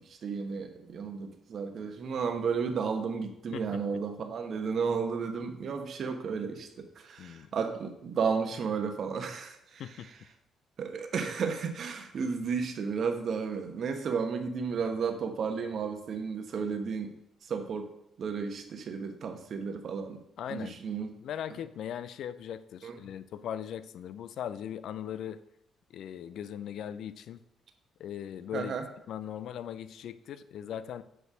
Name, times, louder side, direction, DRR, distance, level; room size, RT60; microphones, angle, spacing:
voice 1, 0.1-9.8 10.8-17.1 17.5-17.9 18.2-20.2 20.5-21.1 22.8-23.0 28.5-28.9, right 5 dB, 60° right, 6 dB, 1.1 m, -33 dB
voice 2, 7.2-7.5 9.8-10.1 20.4-20.8 21.2-25.4 25.9-27.4 28.0-28.8 29.1-31.0, left 9 dB, 75° left, 14 dB, 0.4 m, -39 dB
7.9 x 3.3 x 6.1 m, 0.77 s
cardioid pair, 90°, 0 cm